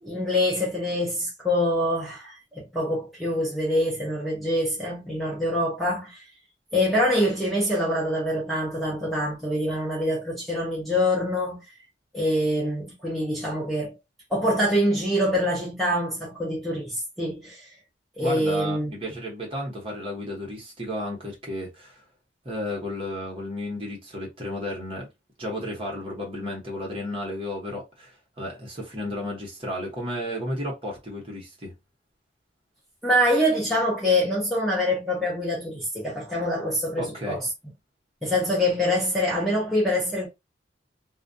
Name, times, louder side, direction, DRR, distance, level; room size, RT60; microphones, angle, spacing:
voice 1, 0.0-6.2 6.7-11.6 12.1-13.9 14.3-17.6 18.2-18.9 33.0-37.5 38.2-40.3, left 1 dB, ahead, 0.7 m, -25 dB
voice 2, 18.2-22.0 22.4-25.1 25.4-31.7 37.0-37.4, left 1 dB, 30° right, 1.0 m, -33 dB
2.3 x 2.2 x 2.6 m
head